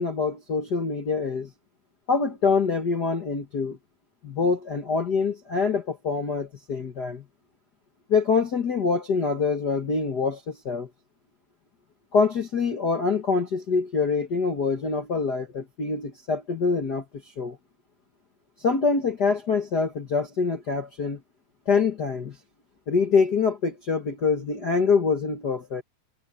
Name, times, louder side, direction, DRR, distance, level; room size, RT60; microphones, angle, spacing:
voice 1, 0.0-1.5 2.1-3.8 4.2-7.2 8.1-10.9 12.1-17.0 17.4-17.6 18.6-21.2 21.7-22.4 22.9-25.8, left 5 dB, 70° left, 0.9 m, -25 dB
omnidirectional pair, 4.2 m